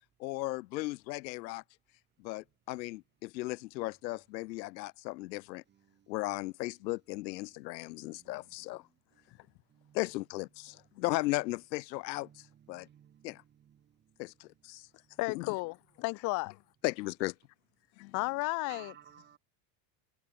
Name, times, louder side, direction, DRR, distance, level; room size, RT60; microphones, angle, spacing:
voice 1, 0.2-1.6 2.2-5.6 6.1-8.8 9.9-12.9 13.2-13.4 14.2-14.9 15.3-15.5 16.8-17.3 18.0-18.1, left 20 dB, 90° left, 2.2 m, -36 dB
voice 2, 12.7-13.3 18.7-19.4, right 10 dB, 20° right, 4.2 m, -54 dB
voice 3, 15.2-16.5 18.1-18.9, left 26 dB, 35° left, 1.2 m, -33 dB
cardioid pair, 180°, 50 cm